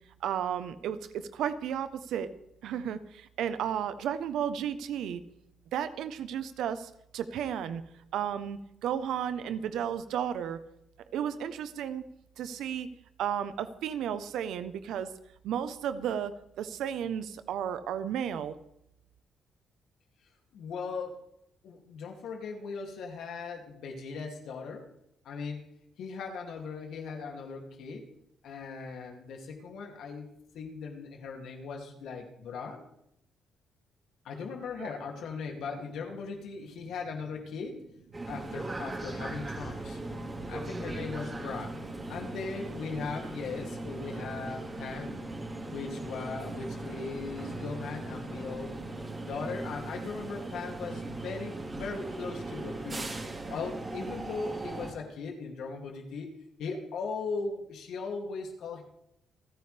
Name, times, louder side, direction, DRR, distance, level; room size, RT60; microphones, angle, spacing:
voice 1, 0.2-2.3 2.6-5.2 5.7-7.8 8.1-10.6 11.1-12.0 12.4-12.9 13.2-15.1 15.4-16.3 16.6-18.6 34.8-34.9 45.5-45.7, right 9 dB, 80° right, 12 dB, 1.0 m, -33 dB
voice 2, 20.5-21.2 21.6-24.9 25.2-25.7 26.0-28.1 28.4-32.8 34.2-37.8 38.3-40.0 40.5-41.7 42.1-45.1 45.7-48.7 49.2-53.1 53.5-56.3 56.6-58.8, left 4 dB, 75° left, 2 dB, 2.7 m, -38 dB
sound 1, 38.1-54.9, right 2 dB, 30° right, 3.5 m, -39 dB
Organ, 39.7-50.4, left 4 dB, 35° left, 1.9 m, -47 dB
28.5 x 9.6 x 3.5 m, 0.78 s
cardioid pair, 90°, 0 cm